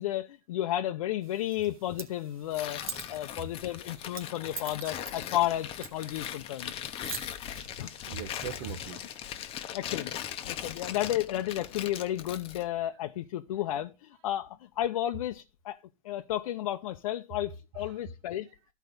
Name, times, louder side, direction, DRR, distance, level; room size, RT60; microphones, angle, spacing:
voice 1, 0.0-6.7 7.8-7.9 9.7-10.1 10.4-15.8 16.0-18.5, left 13 dB, 80° left, 0.6 m, -32 dB
sound 1, 1.2-9.2, right 8 dB, 90° right, 1.7 m, -46 dB
Tearing, 2.5-12.7, left 10 dB, 35° left, 0.8 m, -40 dB
voice 2, 7.4-9.3 10.7-10.8 17.7-18.0, right 6 dB, 60° right, 1.0 m, -42 dB
12.5 x 4.6 x 5.3 m
supercardioid pair, 135°, 18 cm